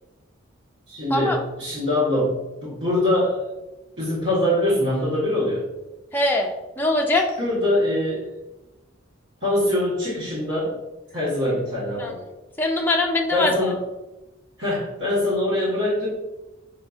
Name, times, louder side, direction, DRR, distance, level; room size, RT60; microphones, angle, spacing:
voice 1, 0.9-3.4 4.0-5.6 7.4-8.3 9.4-10.8 11.1-12.2 13.3-13.9 14.6-16.1, left 1 dB, 60° right, -9 dB, 1.2 m, -23 dB
voice 2, 6.1-6.5 6.8-7.3 12.0-12.1 12.6-13.7, left 2 dB, 10° left, 0 dB, 0.4 m, -22 dB
5.5 x 2.7 x 2.3 m, 1.0 s
head